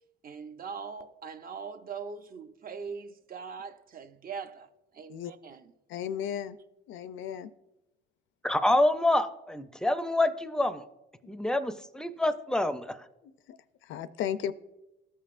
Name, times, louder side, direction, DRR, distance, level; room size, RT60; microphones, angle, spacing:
voice 1, 0.2-4.7 4.9-5.6, right 5 dB, 45° right, 0.6 m, -41 dB
voice 2, 5.9-6.6 6.9-7.5 13.2-13.6 13.8-14.5, left 9 dB, 75° left, 0.4 m, -35 dB
voice 3, 8.4-10.8 11.3-13.0, left 1 dB, 5° left, 0.4 m, -27 dB
14.0 x 5.5 x 2.5 m
cardioid pair, 90°, 20 cm